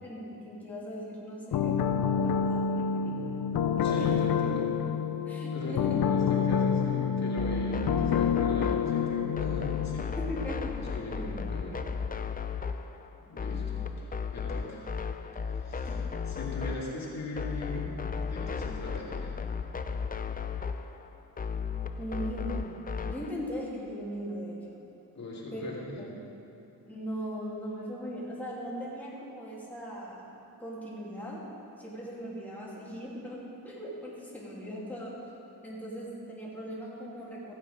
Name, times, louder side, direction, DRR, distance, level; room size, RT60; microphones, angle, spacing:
voice 1, 0.0-3.4 3.8-4.1 5.3-6.0 10.1-11.4 15.9-16.1 22.0-22.7 23.0-24.8 25.5-25.6 26.0-26.1 26.9-30.3 30.6-31.4 31.8-35.2 35.6-37.5, equal, 5° left, -6 dB, 2.4 m, -39 dB
sound 1, 1.5-10.0, left 7 dB, 70° left, 0.6 m, -28 dB
voice 2, 3.8-4.7 5.5-10.2 10.8-11.8 13.3-14.9 15.5-16.0 16.3-17.9 18.2-19.4 25.1-26.1, left 1 dB, 50° left, -4 dB, 2.2 m, -39 dB
sound 2, 7.4-23.3, left 6 dB, 25° left, 0.4 m, -35 dB
15.0 x 8.6 x 5.0 m, 2.9 s
wide cardioid pair, 155°, 36 cm